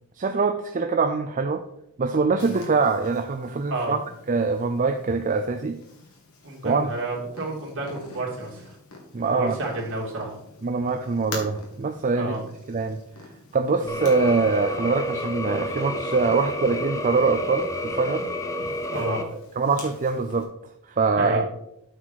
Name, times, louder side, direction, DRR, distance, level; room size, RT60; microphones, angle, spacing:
voice 1, 0.2-1.6 2.0-4.0 4.3-5.8 6.6-6.9 9.1-9.5 10.6-12.3 12.7-13.0 13.5-18.3 19.6-20.5 20.9-21.4, right 4 dB, 35° right, 7 dB, 0.5 m, -23 dB
Purr, 2.4-20.4, left 3 dB, 85° left, 2.5 m, -46 dB
voice 2, 6.4-8.7 9.3-10.4 12.1-12.4 13.8-14.0 18.9-19.2 21.2-21.5, right 2 dB, 60° right, -2 dB, 2.7 m, -30 dB
sound 1, 13.9-19.2, left 1 dB, 15° left, 0.8 m, -30 dB
8.6 x 4.8 x 5.8 m, 0.78 s
head